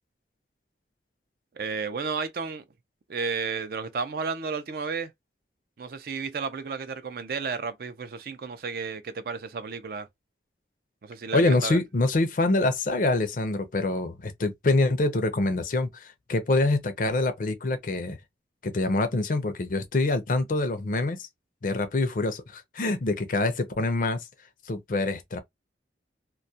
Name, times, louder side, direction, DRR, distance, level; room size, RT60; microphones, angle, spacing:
voice 1, 1.5-2.6 3.1-5.1 5.8-10.1 11.0-11.8, right 5 dB, 55° right, 0.4 m, -32 dB
voice 2, 11.3-18.2 18.6-21.3 21.6-24.2 24.7-25.4, left 2 dB, 45° left, 0.5 m, -25 dB
2.3 x 2.1 x 2.6 m
head